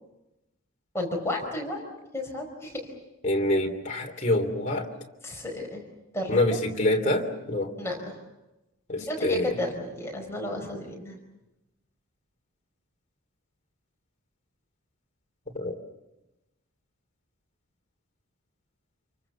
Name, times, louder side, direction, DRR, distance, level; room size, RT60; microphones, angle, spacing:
voice 1, 0.9-1.8 2.1-2.9 5.2-5.8 6.1-6.4 7.8-8.1 9.0-11.1, left 1 dB, 10° left, 0 dB, 4.8 m, -32 dB
voice 2, 3.2-4.9 6.3-7.7 8.9-9.5 15.5-15.7, left 1 dB, 35° left, 2 dB, 3.1 m, -26 dB
28.5 x 23.5 x 7.1 m, 0.96 s
head